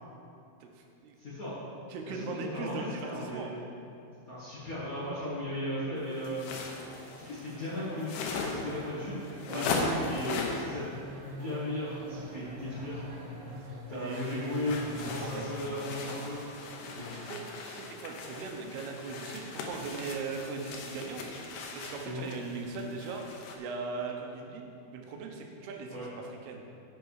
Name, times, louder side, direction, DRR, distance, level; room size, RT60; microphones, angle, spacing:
voice 1, 0.6-1.2 1.9-3.5 9.5-9.7 13.9-14.6 15.4-15.5 16.9-21.3 21.7-23.2 23.6-24.6 24.9-26.7, right 4 dB, 90° right, 2 dB, 3.0 m, -39 dB
voice 2, 1.2-1.5 2.0-3.7 4.3-6.4 7.1-9.2 9.5-11.0 11.2-13.0 13.9-17.2 22.0-22.2 25.9-26.1, left 1 dB, 65° left, -9 dB, 0.8 m, -36 dB
sound 1, 6.1-10.7 14.0-23.6, left 3 dB, 90° left, 3.0 m, -38 dB
sound 2, 6.6-15.6, right 2 dB, 70° right, 1.4 m, -52 dB
sound 3, 10.9-16.3, left 1 dB, 40° left, 2.6 m, -44 dB
10.5 x 7.5 x 4.8 m, 2.6 s
omnidirectional pair, 4.4 m